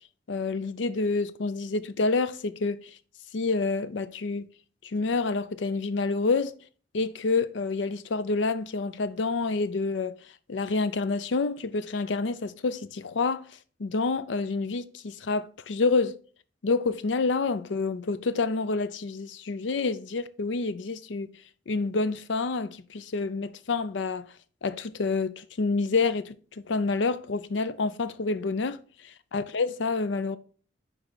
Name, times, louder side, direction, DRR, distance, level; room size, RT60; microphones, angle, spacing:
voice 1, 0.3-2.8 3.3-4.5 4.9-6.5 6.9-10.1 10.5-13.5 13.8-16.2 16.6-21.3 21.7-24.2 24.6-28.8 29.3-30.4, left 3 dB, 85° left, 0.5 m, -28 dB
9.7 x 3.3 x 4.0 m
head